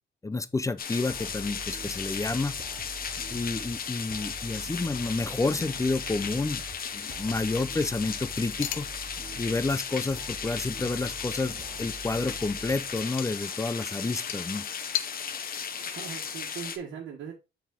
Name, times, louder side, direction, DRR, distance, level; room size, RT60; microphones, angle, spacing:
voice 1, 0.2-2.6 3.3-6.6 6.9-8.9 9.4-14.6, left 3 dB, 15° left, 0.5 m, -30 dB
sound 1, 0.8-16.8, left 7 dB, 45° left, 0.9 m, -36 dB
sound 2, 1.1-13.3, right 4 dB, 30° right, 0.7 m, -45 dB
sound 3, 4.9-15.1, left 13 dB, 80° left, 0.6 m, -42 dB
voice 2, 15.8-17.3, right 7 dB, 75° right, 1.5 m, -40 dB
6.9 x 4.2 x 3.7 m
cardioid pair, 90°, 20 cm